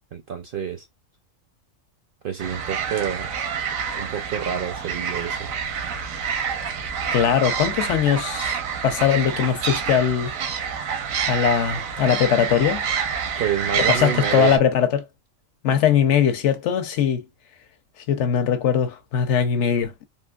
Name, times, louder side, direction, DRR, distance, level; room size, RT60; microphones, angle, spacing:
voice 1, 0.1-0.9 2.2-3.3 3.9-5.5 13.4-14.6, right 8 dB, 65° right, 0.5 m, -28 dB
sound 1, 2.4-14.6, right 7 dB, 90° right, 1.1 m, -27 dB
voice 2, 7.1-8.6 8.8-10.3 11.3-12.8 13.8-15.0 15.6-17.2 18.1-19.9, left 8 dB, 70° left, 0.8 m, -20 dB
3.6 x 2.4 x 2.2 m
omnidirectional pair, 1.4 m